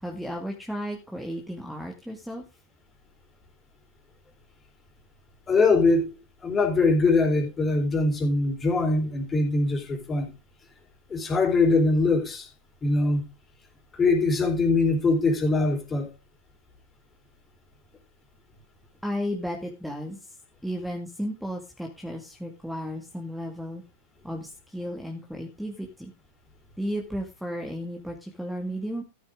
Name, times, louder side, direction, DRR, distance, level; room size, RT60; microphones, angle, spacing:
voice 1, 0.0-2.4 19.0-20.2 20.6-23.8 24.2-26.1 26.8-29.0, equal, ahead, 2.1 m, -34 dB
voice 2, 5.5-10.3 11.1-12.5 12.8-13.2 13.9-16.1, left 3 dB, 20° left, 4.1 m, -22 dB
13.5 x 8.4 x 3.8 m
hypercardioid pair, 100°, 0 cm